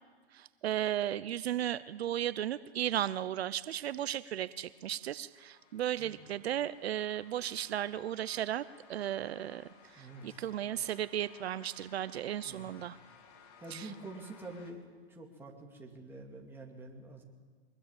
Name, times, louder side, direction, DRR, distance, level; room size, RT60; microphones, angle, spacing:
voice 1, 0.3-8.6 8.9-13.0 13.7-13.9, right 11 dB, 75° right, 16 dB, 0.8 m, -35 dB
sound 1, 4.6-14.7, left 6 dB, 40° left, 3.0 m, -60 dB
voice 2, 9.9-10.4 12.4-12.7 13.6-14.8 15.1-17.2, right 2 dB, 5° right, -1 dB, 2.6 m, -47 dB
23.0 x 20.5 x 8.9 m, 1.5 s
hypercardioid pair, 155°, 32 cm